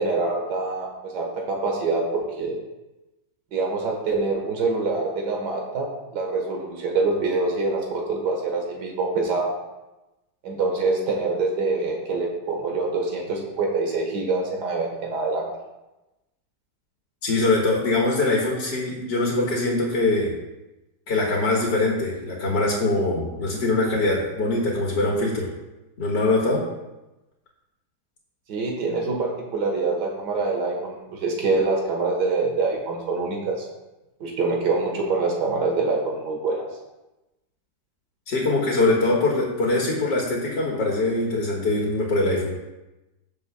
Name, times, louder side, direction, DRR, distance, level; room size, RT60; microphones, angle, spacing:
voice 1, 0.0-2.6 3.5-9.5 10.4-15.5 28.5-33.7 34.2-36.6, right 3 dB, 70° right, 0 dB, 2.1 m, -25 dB
voice 2, 17.2-20.3 21.1-25.5 26.0-26.6 38.3-42.6, left 2 dB, 75° left, -4 dB, 2.3 m, -23 dB
16.5 x 6.9 x 2.3 m, 1.0 s
omnidirectional pair, 1.9 m